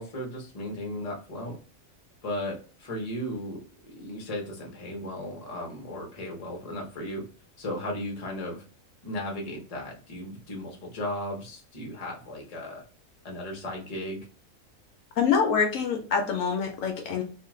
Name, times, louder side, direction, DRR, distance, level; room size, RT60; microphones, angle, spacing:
voice 1, 0.0-1.6 2.2-7.2 7.6-8.6 9.0-12.8 13.2-14.3, left 1 dB, 35° left, 0 dB, 0.7 m, -36 dB
voice 2, 15.2-17.2, left 6 dB, 70° left, 3 dB, 0.9 m, -25 dB
2.5 x 2.4 x 3.0 m, 0.38 s
omnidirectional pair, 1.5 m